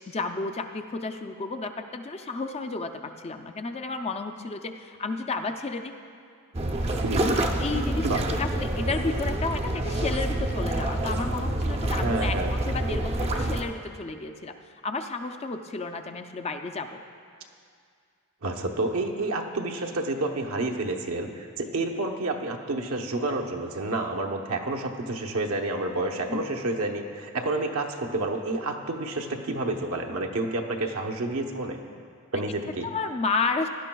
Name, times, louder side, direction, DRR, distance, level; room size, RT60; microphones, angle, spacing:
voice 1, 0.1-5.9 7.6-8.1 8.4-14.5 14.8-17.0 26.3-26.5 31.9-32.0 32.8-33.7, left 3 dB, 30° left, 6 dB, 0.4 m, -32 dB
sound 1, 6.5-13.6, right 1 dB, 30° right, 0.5 m, -27 dB
voice 2, 7.0-7.5 8.0-8.2 12.0-12.5 18.4-31.8 32.3-32.9, right 2 dB, 75° right, 2 dB, 0.9 m, -29 dB
16.5 x 11.5 x 2.3 m, 2.2 s
head